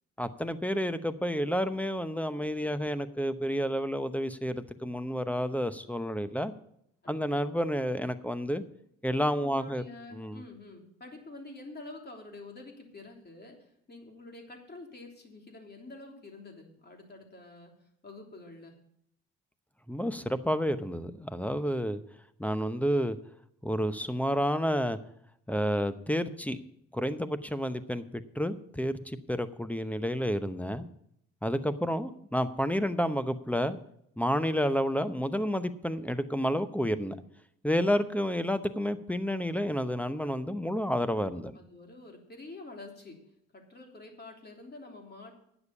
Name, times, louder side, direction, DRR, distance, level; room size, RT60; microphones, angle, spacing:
voice 1, 0.2-6.5 7.1-8.6 9.0-9.8 10.1-10.4 19.9-22.0 22.4-23.2 23.6-25.0 25.5-26.6 26.9-30.9 31.4-33.8 34.2-37.2 37.6-41.6, equal, 5° left, 12 dB, 0.8 m, -30 dB
voice 2, 9.4-17.7 18.0-18.8 41.0-43.2 43.5-45.3, left 2 dB, 30° left, 2 dB, 3.2 m, -48 dB
9.5 x 7.1 x 8.5 m, 0.73 s
supercardioid pair, 65°, 32 cm